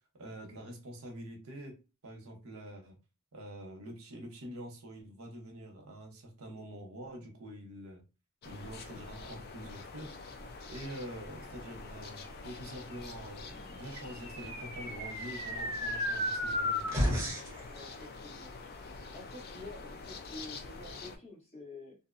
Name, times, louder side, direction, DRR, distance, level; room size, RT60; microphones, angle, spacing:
voice 1, 0.1-1.7 2.0-3.0 3.3-8.0 8.4-10.1 10.7-17.0, right 1 dB, 70° right, 1 dB, 0.8 m, -46 dB
sound 1, 8.4-21.2, left 3 dB, 45° left, 0.4 m, -46 dB
sound 2, 14.1-17.6, left 1 dB, 15° right, 0.9 m, -33 dB
voice 2, 17.7-18.5 19.1-22.0, left 2 dB, 30° left, -2 dB, 1.1 m, -49 dB
2.5 x 2.0 x 2.4 m, 0.30 s
head